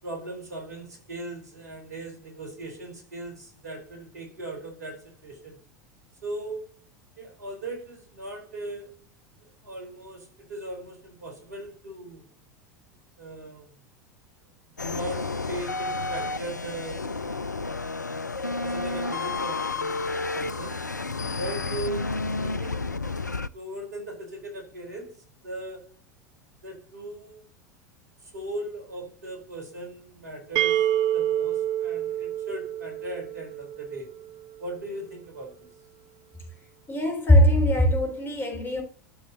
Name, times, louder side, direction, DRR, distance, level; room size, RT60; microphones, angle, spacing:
voice 1, 0.0-5.6 6.2-6.7 7.2-8.9 9.4-12.3 13.2-13.7 14.8-17.2 18.4-20.8 21.3-22.9 23.5-25.9 26.6-27.4 28.2-34.1 34.6-35.7, right 2 dB, 70° right, 4.2 m, -38 dB
sound 1, 14.8-23.5, left 3 dB, 90° left, 0.4 m, -31 dB
sound 2, 30.6-34.3, right 11 dB, 40° right, 0.8 m, -27 dB
voice 2, 36.9-38.8, equal, 25° left, 3.6 m, -20 dB
12.5 x 6.2 x 2.9 m
figure-of-eight pair, 80°, 9 cm